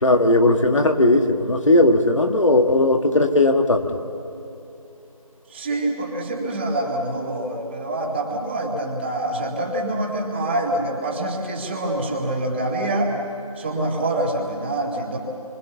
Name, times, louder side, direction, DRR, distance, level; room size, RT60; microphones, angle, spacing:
voice 1, 0.0-3.9, left 2 dB, 55° left, 5 dB, 1.8 m, -17 dB
voice 2, 5.5-13.1 13.6-15.2, right 1 dB, 20° right, -1 dB, 2.2 m, -25 dB
25.0 x 25.0 x 7.0 m, 3.0 s
figure-of-eight pair, 165°, 19 cm